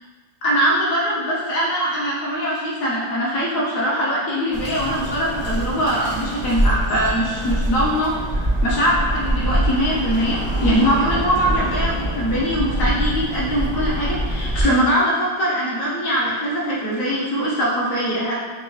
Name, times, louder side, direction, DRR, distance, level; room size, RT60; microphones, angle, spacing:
voice 1, 0.4-18.4, equal, 55° left, -5 dB, 1.0 m, -22 dB
Bird, 4.5-14.6, right 1 dB, 10° right, 0.8 m, -24 dB
4.0 x 3.5 x 2.9 m, 1.4 s
omnidirectional pair, 2.1 m